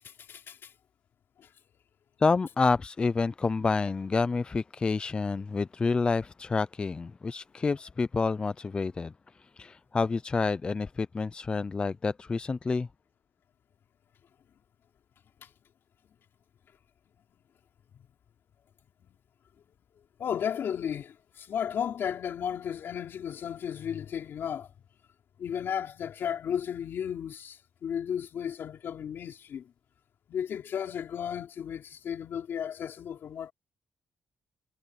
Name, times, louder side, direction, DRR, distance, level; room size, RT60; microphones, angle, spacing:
voice 1, 2.2-9.1 9.6-12.9, left 4 dB, 20° left, 0.3 m, -28 dB
voice 2, 20.2-24.7 25.4-29.6 30.3-33.5, left 8 dB, 60° left, 3.6 m, -34 dB
cardioid pair, 155°, 4 cm